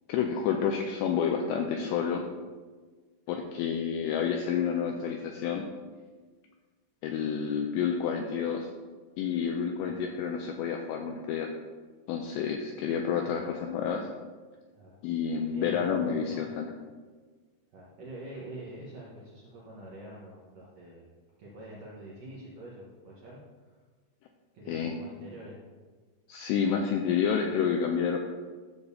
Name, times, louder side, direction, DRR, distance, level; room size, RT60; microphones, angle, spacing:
voice 1, 0.1-2.3 3.3-5.6 7.0-8.7 9.2-11.5 12.1-14.1 15.0-16.7 24.7-25.0 26.3-28.2, left 7 dB, 85° left, 3 dB, 2.5 m, -29 dB
voice 2, 15.5-16.5 17.7-21.1 21.4-23.4 24.5-25.6, right 1 dB, 70° right, -6 dB, 2.0 m, -46 dB
13.0 x 6.8 x 2.7 m, 1.4 s
omnidirectional pair, 5.5 m